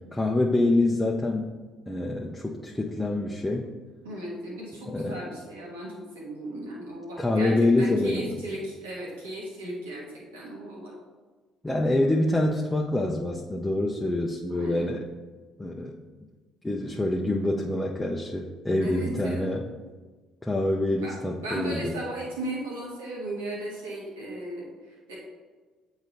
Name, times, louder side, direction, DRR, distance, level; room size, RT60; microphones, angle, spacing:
voice 1, 0.1-1.5 1.9-3.7 4.9-5.2 7.2-8.4 11.6-15.0 15.6-16.0 16.6-19.6 20.4-21.9, left 2 dB, 10° left, -2 dB, 0.7 m, -26 dB
voice 2, 4.0-10.9 14.5-14.8 18.8-19.5 21.0-25.1, right 1 dB, 80° right, -4 dB, 1.6 m, -36 dB
8.8 x 4.0 x 2.7 m, 1.4 s
figure-of-eight pair, 50°, 0 cm